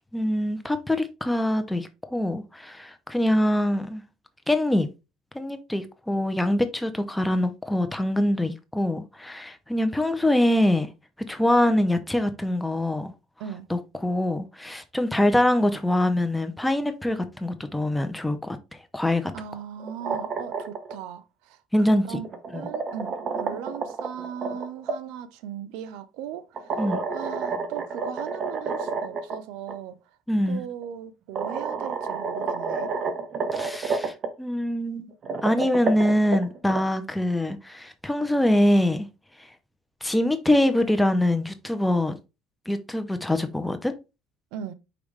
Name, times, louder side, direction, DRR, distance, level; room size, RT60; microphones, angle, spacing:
voice 1, 0.1-4.0 4.5-4.9 5.3-10.9 11.3-13.1 13.7-18.6 18.9-19.3 21.7-22.2 22.5-22.7 26.8-27.0 30.3-30.6 33.5-35.1 35.4-39.1 40.0-42.1 42.7-43.9, left 1 dB, 5° left, 0.6 m, -24 dB
voice 2, 19.3-21.6 21.9-26.8 27.1-30.0 30.5-32.9 44.5-44.7, right 9 dB, 85° right, 0.5 m, -38 dB
sound 1, 19.8-20.9 22.1-25.0 26.6-29.4 29.7-29.8 30.8-30.9 31.4-34.3 35.1-36.8, right 4 dB, 45° right, 0.7 m, -30 dB
5.0 x 3.1 x 3.2 m
cardioid pair, 115°, 0 cm